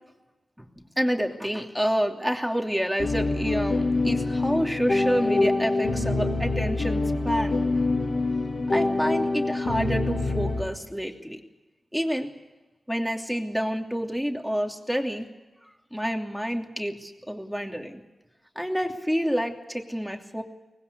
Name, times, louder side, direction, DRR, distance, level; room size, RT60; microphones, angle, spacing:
voice 1, 0.6-7.6 8.0-8.3 8.7-11.4 11.9-12.3 12.9-15.3 15.9-18.0 18.5-20.4, equal, ahead, 3 dB, 2.9 m, -28 dB
sound 1, 3.0-10.6, left 2 dB, 75° left, 7.8 m, -25 dB
24.0 x 20.0 x 8.3 m, 1.1 s
wide cardioid pair, 70°, 0 cm